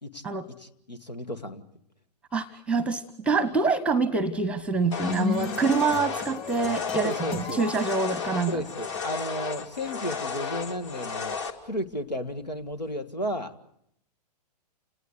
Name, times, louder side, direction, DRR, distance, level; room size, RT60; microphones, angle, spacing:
voice 1, 0.6-1.6 5.2-5.4 6.9-7.6 8.5-13.5, equal, 90° left, 11 dB, 2.0 m, -33 dB
voice 2, 2.3-7.1 7.5-8.6, right 4 dB, 5° right, 17 dB, 0.9 m, -26 dB
sound 1, 4.7-9.0, left 7 dB, 30° left, 3.6 m, -35 dB
sound 2, 4.9-11.5, left 5 dB, 45° left, 2.8 m, -34 dB
29.5 x 19.0 x 8.1 m, 0.73 s
figure-of-eight pair, 115°, 21 cm